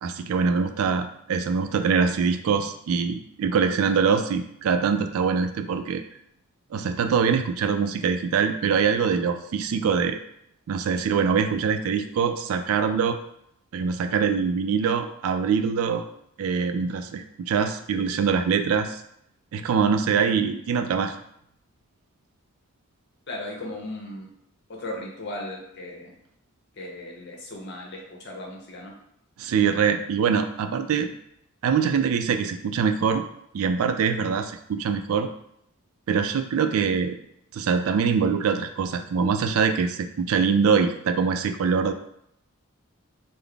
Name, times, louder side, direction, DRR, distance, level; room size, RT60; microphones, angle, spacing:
voice 1, 0.0-6.0 6.7-10.2 10.7-13.2 13.7-16.0 16.4-19.0 19.5-21.1 29.4-31.1 31.6-33.2 33.5-35.3 36.1-37.2 37.5-41.9, right 6 dB, 75° right, 8 dB, 0.3 m, -23 dB
voice 2, 23.3-24.3 24.7-26.1 26.7-28.9, left 1 dB, 50° left, 0 dB, 0.8 m, -36 dB
3.8 x 2.0 x 3.3 m, 0.73 s
head